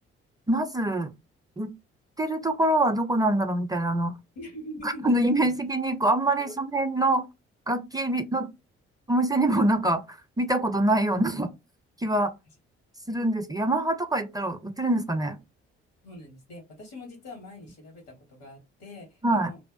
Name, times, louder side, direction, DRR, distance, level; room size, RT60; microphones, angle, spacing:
voice 1, 0.5-1.1 1.6-1.7 2.2-4.1 4.8-7.3 7.7-8.5 9.1-11.5 12.0-12.3 13.1-15.4 19.2-19.5, right 1 dB, 15° right, 0.4 m, -25 dB
voice 2, 4.3-5.1 5.4-5.5 6.5-6.6 8.0-8.2 16.0-19.6, left 1 dB, 85° left, 1.3 m, -43 dB
2.6 x 2.0 x 2.5 m
hypercardioid pair, 45°, 30 cm